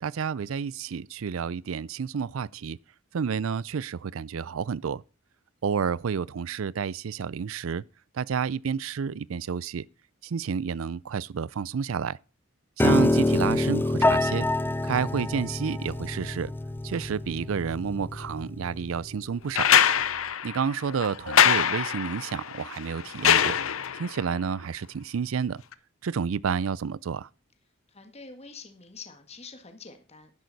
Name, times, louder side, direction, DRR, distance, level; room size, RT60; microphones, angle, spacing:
voice 1, 0.0-2.8 3.1-5.0 5.6-7.8 8.1-9.9 10.2-12.2 12.8-14.5 14.8-16.5 16.8-19.7 20.4-23.6 23.9-25.6 26.0-27.3, right 6 dB, 80° right, 0.4 m, -30 dB
Piano, 12.8-19.0, left 2 dB, 10° left, 0.5 m, -26 dB
sound 1, 19.6-24.2 25.7-25.8, left 8 dB, 85° left, 0.8 m, -23 dB
voice 2, 27.9-30.3, left 4 dB, 30° left, 1.7 m, -46 dB
11.0 x 10.5 x 4.1 m
head